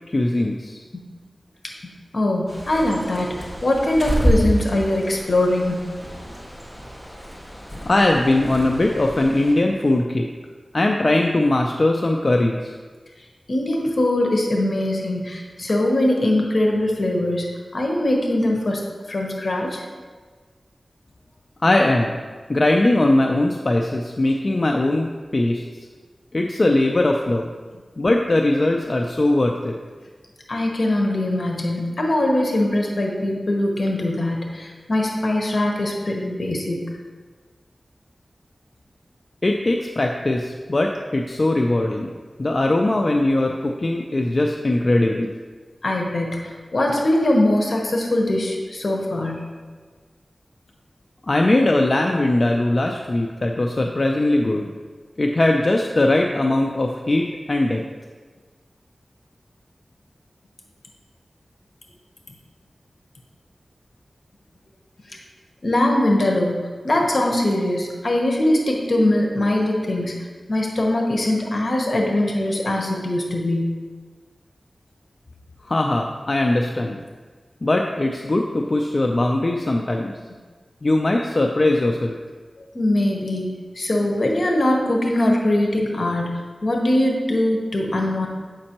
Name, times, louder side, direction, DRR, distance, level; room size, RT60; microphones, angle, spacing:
voice 1, 0.1-0.8 7.7-10.3 10.7-12.7 21.6-22.2 22.5-25.6 26.3-27.5 28.0-29.8 39.4-42.1 42.4-45.3 51.3-54.7 55.2-57.8 75.6-77.0 77.6-80.1 80.8-82.2, left 2 dB, 45° left, 1 dB, 0.4 m, -20 dB
voice 2, 2.1-5.9 13.5-18.8 19.1-19.8 30.5-36.9 45.8-49.4 65.1-65.2 65.6-70.2 70.5-73.8 82.6-88.3, left 1 dB, 65° left, 0 dB, 1.0 m, -22 dB
Bird, 2.5-9.5, equal, 5° left, 1.4 m, -28 dB
7.5 x 5.2 x 2.9 m, 1.5 s
wide cardioid pair, 65°, 0 cm